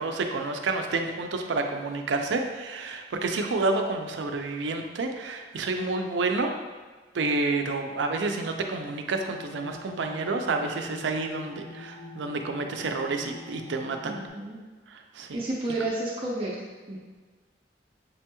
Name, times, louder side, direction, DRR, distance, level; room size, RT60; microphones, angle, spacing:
voice 1, 0.0-6.5 7.1-14.1 14.9-15.4, right 3 dB, 85° right, 4 dB, 0.4 m, -29 dB
sound 1, 9.1-14.3, left 3 dB, 80° left, 0.9 m, -44 dB
voice 2, 14.0-14.6 15.3-16.6 16.9-17.0, right 2 dB, 30° right, -5 dB, 0.5 m, -31 dB
6.7 x 2.9 x 2.2 m, 1.4 s
head